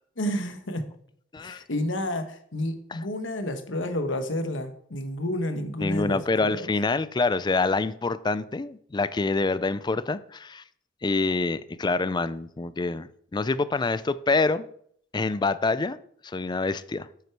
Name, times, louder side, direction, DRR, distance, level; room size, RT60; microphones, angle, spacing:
voice 1, 0.2-0.9 1.4-6.7, left 1 dB, 75° left, 8 dB, 1.3 m, -30 dB
voice 2, 1.3-1.6 2.9-3.0 5.8-10.6 11.0-14.7 15.1-16.0 16.2-17.1, left 3 dB, 25° left, 16 dB, 0.4 m, -26 dB
9.6 x 8.1 x 4.6 m, 0.65 s
head